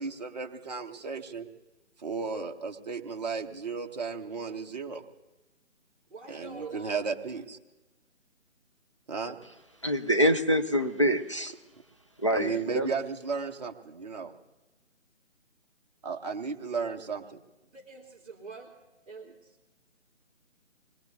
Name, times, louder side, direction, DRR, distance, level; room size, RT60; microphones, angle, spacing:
voice 1, 0.0-1.5 2.0-5.0 6.3-7.6 9.1-9.4 12.3-14.3 16.0-17.4, right 5 dB, 35° right, 3 dB, 0.9 m, -34 dB
voice 2, 6.1-7.0 17.6-18.7 19.1-19.6, right 4 dB, 5° right, -15 dB, 2.1 m, -45 dB
voice 3, 9.8-11.5 12.2-12.9, equal, 25° left, 5 dB, 0.4 m, -25 dB
25.0 x 21.0 x 2.7 m, 1.1 s
figure-of-eight pair, 155°, 38 cm